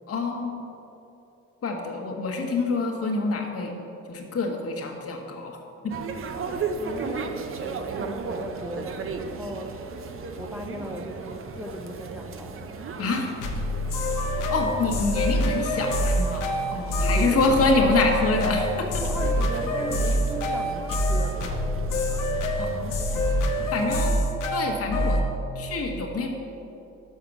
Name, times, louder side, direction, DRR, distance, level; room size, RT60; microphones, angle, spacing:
voice 1, 0.1-0.6 1.6-3.8 4.1-5.6 5.8-5.9 13.0-13.3 14.5-19.0 22.6-23.0 23.7-24.3 24.5-25.2 25.5-26.3, left 3 dB, 50° left, 2 dB, 1.2 m, -26 dB
sound 1, 5.9-23.9, right 4 dB, 45° right, 0.6 m, -36 dB
voice 2, 6.4-9.8 10.3-12.7 16.9-17.9 19.0-22.3 23.7-24.0, equal, 5° right, 1 dB, 0.7 m, -38 dB
sound 2, 13.4-25.3, equal, 90° left, 0.8 m, -25 dB
6.5 x 5.0 x 6.0 m, 3.0 s
cardioid pair, 90°, 30 cm